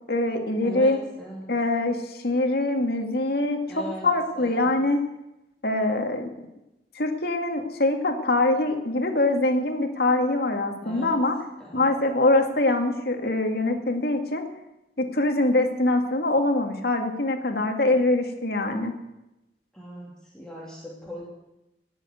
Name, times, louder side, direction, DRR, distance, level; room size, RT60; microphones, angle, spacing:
voice 1, 0.1-1.0 1.5-5.0 5.6-6.3 7.0-11.4 11.7-14.4 15.0-18.9, left 2 dB, 60° left, 4 dB, 2.1 m, -24 dB
voice 2, 0.6-1.5 3.7-4.7 10.8-11.2 11.6-11.9 19.7-21.3, right 1 dB, 5° left, -5 dB, 2.7 m, -39 dB
18.0 x 7.5 x 9.2 m, 0.93 s
head